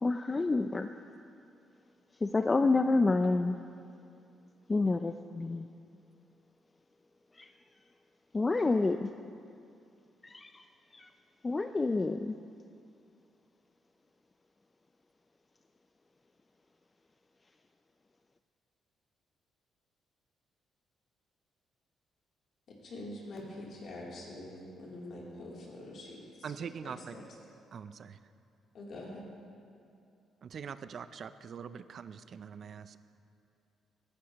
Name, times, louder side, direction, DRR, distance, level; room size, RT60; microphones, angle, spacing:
voice 1, 0.0-0.9 2.2-3.6 4.7-5.7 7.4-7.5 8.3-9.1 10.3-10.5 10.9-11.1 11.4-12.3, left 3 dB, 25° left, 8 dB, 0.3 m, -28 dB
voice 2, 22.7-26.2 26.8-27.2 28.7-29.2, left 1 dB, 65° left, -4 dB, 3.1 m, -45 dB
voice 3, 26.4-27.2 27.7-28.2 30.4-33.0, right 7 dB, 55° right, 13 dB, 0.4 m, -43 dB
16.0 x 11.5 x 3.0 m, 2.5 s
cardioid pair, 90°, 0 cm